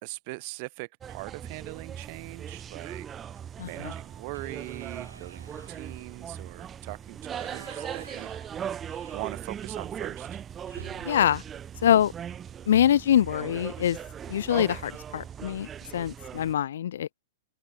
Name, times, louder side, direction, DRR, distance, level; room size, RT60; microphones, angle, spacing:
voice 1, 0.0-3.1 3.6-8.3 9.1-10.4, right 30 dB, 45° right, 2.9 m, -41 dB
sound 1, 1.0-16.5, right 8 dB, 20° right, 0.5 m, -39 dB
sound 2, 2.5-2.9 3.3-3.4 3.8-9.8 10.1-10.2 10.6-12.8 14.1-14.4 14.8-14.9 15.2-15.8, right 4 dB, 85° right, 5.4 m, -52 dB
voice 2, 3.6-3.9 11.0-11.4 11.8-12.1 12.7-14.0 14.3-15.7 15.9-17.1, left 10 dB, 65° left, 0.4 m, -24 dB
open air
figure-of-eight pair, 110°, 0 cm